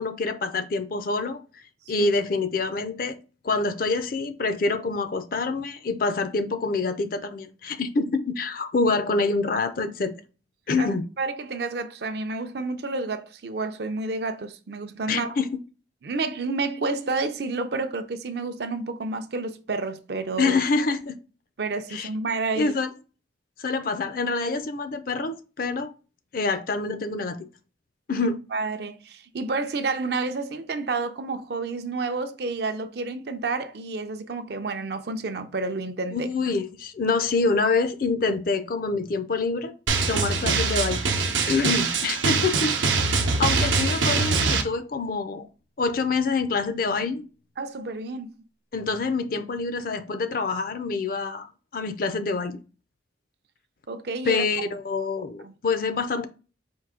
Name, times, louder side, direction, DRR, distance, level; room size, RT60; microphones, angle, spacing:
voice 1, 0.0-1.4 1.9-3.2 3.4-10.1 10.7-11.0 15.1-15.5 20.4-21.2 21.9-22.1 22.5-22.9 23.6-25.9 26.3-27.4 28.1-28.4 36.1-39.7 40.1-41.1 41.5-42.9 43.4-45.5 45.8-47.2 48.7-51.5 51.7-52.6 54.2-56.3, left 3 dB, 50° left, 0.4 m, -26 dB
voice 2, 11.2-15.4 16.0-20.5 21.6-22.7 28.5-36.3 47.6-48.3 53.9-54.4 55.4-55.5, right 3 dB, 55° right, 0.5 m, -30 dB
Drum, 39.9-44.6, right 4 dB, 85° right, 0.8 m, -23 dB
4.6 x 2.7 x 3.6 m
head